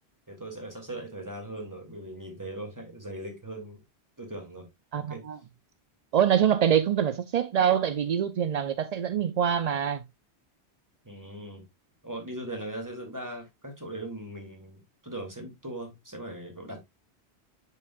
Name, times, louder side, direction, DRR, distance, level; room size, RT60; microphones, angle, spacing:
voice 1, 0.3-3.8 4.2-4.7 4.9-5.2 11.0-11.6 12.0-16.9, right 1 dB, 15° right, 2.5 m, -39 dB
voice 2, 4.9-5.4 6.1-10.0, right 9 dB, 55° right, 0.4 m, -25 dB
10.5 x 5.1 x 2.3 m
omnidirectional pair, 1.1 m